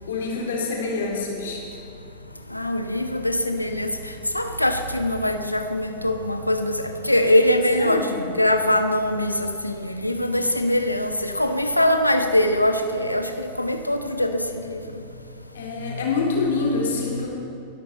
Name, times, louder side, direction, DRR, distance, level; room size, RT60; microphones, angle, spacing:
voice 1, 0.0-1.6 7.7-8.1 15.5-17.3, left 4 dB, 60° left, -2 dB, 3.9 m, -26 dB
voice 2, 2.5-15.0 15.8-16.0 17.1-17.3, left 1 dB, 85° left, 6 dB, 1.0 m, -23 dB
22.5 x 12.5 x 4.5 m, 2.6 s
figure-of-eight pair, 90°, 0 cm